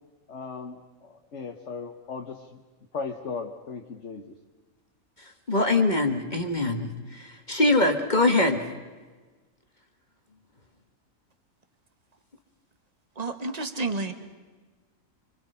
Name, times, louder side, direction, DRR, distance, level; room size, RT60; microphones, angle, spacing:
voice 1, 0.3-2.6 2.9-4.3, left 5 dB, 55° left, 3 dB, 1.5 m, -37 dB
voice 2, 5.5-8.6, left 2 dB, 35° left, 4 dB, 1.7 m, -23 dB
voice 3, 13.1-14.1, right 3 dB, 30° right, 8 dB, 1.6 m, -30 dB
26.5 x 25.0 x 5.6 m, 1.3 s
omnidirectional pair, 1.5 m